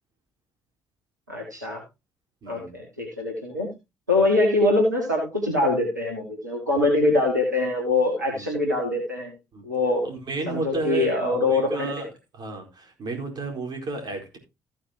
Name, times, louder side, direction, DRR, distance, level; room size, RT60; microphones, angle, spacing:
voice 1, 1.3-1.8 2.5-3.7 4.1-9.3 9.6-10.0 10.5-11.9, left 2 dB, 90° right, -1 dB, 2.3 m, -23 dB
voice 2, 2.4-2.8 4.2-4.3 8.3-8.5 9.5-9.6 10.0-12.1 12.3-14.4, right 2 dB, 50° right, 3 dB, 4.4 m, -32 dB
15.0 x 8.7 x 2.9 m, 0.24 s
figure-of-eight pair, 45°, 9 cm